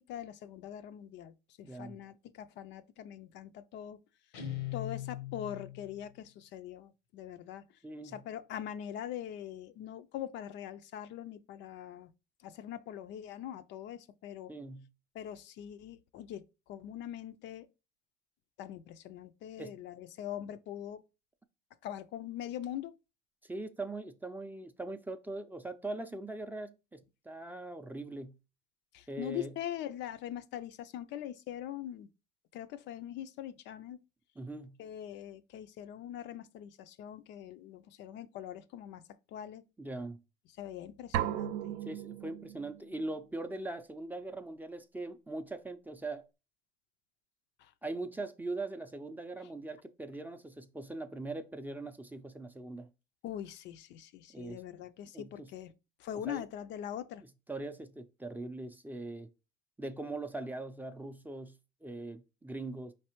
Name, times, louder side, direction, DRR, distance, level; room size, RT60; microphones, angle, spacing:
voice 1, 0.1-4.0 4.7-7.6 8.1-12.1 12.4-14.5 15.2-16.4 16.7-17.7 18.6-21.0 21.8-22.9 28.9-32.1 32.5-34.0 34.8-39.0 39.3-39.6 40.6-41.7 53.2-55.7 56.0-57.2, left 10 dB, 60° left, 0.4 m, -42 dB
voice 2, 1.6-2.0 7.8-8.2 14.5-14.9 19.6-19.8 23.4-28.3 29.1-29.5 34.4-34.8 39.8-40.2 41.8-46.3 47.8-52.9 54.3-54.6 55.1-55.5 56.1-56.4 57.5-59.3 59.8-61.6 61.8-62.9, right 2 dB, 10° right, 0.4 m, -41 dB
Guitar, 4.3-6.0, left 13 dB, 90° left, 1.0 m, -40 dB
sound 1, 41.1-43.0, right 11 dB, 80° right, 0.5 m, -36 dB
4.8 x 3.2 x 3.0 m
cardioid pair, 105°, 20 cm